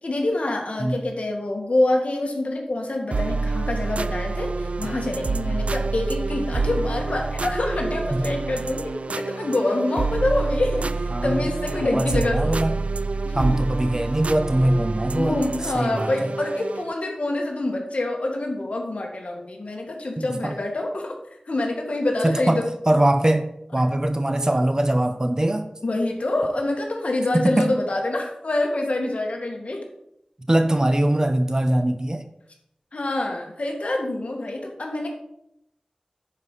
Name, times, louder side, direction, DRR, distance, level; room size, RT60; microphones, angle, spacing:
voice 1, 0.0-12.5 13.2-13.5 15.1-21.1 21.5-22.6 25.8-29.8 32.9-35.1, left 2 dB, 70° left, 1 dB, 1.9 m, -26 dB
sound 1, 3.1-16.9, right 3 dB, 70° right, 0.3 m, -27 dB
voice 2, 11.8-12.8 13.3-15.4 15.7-16.3 20.2-20.5 22.2-25.7 27.4-27.7 30.5-32.2, right 1 dB, 30° right, 9 dB, 0.8 m, -22 dB
9.8 x 4.9 x 5.6 m, 0.78 s
wide cardioid pair, 60°, 2 cm